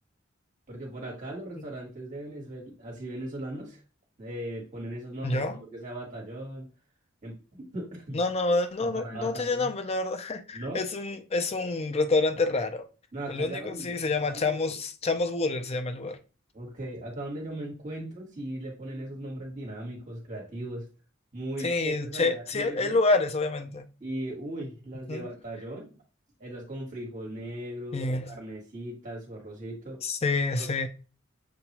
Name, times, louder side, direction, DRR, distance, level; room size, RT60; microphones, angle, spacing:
voice 1, 0.7-3.8 4.2-6.7 7.2-8.2 8.8-9.7 10.5-10.8 13.1-14.7 16.5-20.9 21.3-23.0 24.0-25.9 26.4-30.0 30.6-30.7, right 1 dB, 40° right, 1.5 m, -38 dB
voice 2, 5.2-5.6 8.1-12.9 13.3-16.2 21.6-23.9 25.1-25.3 27.9-28.3 30.0-30.9, left 3 dB, 30° left, 0.5 m, -28 dB
6.9 x 2.3 x 3.0 m
head